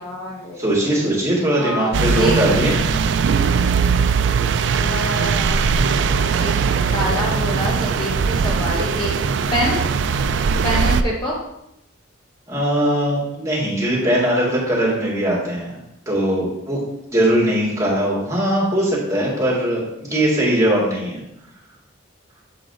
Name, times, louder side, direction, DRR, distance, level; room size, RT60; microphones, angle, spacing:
voice 1, 0.0-1.0 1.6-2.5 4.6-9.8 10.6-11.3, left 1 dB, 20° left, -4 dB, 0.8 m, -27 dB
voice 2, 0.6-2.7 12.5-15.8 16.1-16.8 17.1-21.2, right 1 dB, 15° right, -6 dB, 2.1 m, -20 dB
sound 1, 1.9-11.0, right 5 dB, 60° right, 0.3 m, -20 dB
7.7 x 4.0 x 3.9 m, 0.83 s
head